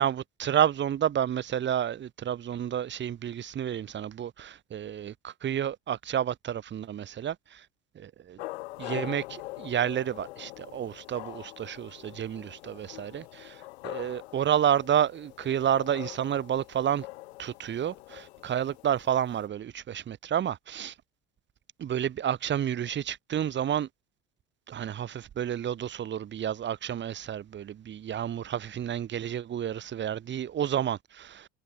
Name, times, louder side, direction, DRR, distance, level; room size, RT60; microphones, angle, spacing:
voice 1, 0.0-7.6 8.0-8.4 8.8-13.5 13.8-17.1 17.4-20.9 21.8-23.9 24.7-31.5, right 10 dB, 35° right, 1.2 m, -30 dB
sound 1, 8.4-19.5, left 21 dB, 80° left, 4.7 m, -43 dB
hypercardioid pair, 80°, 32 cm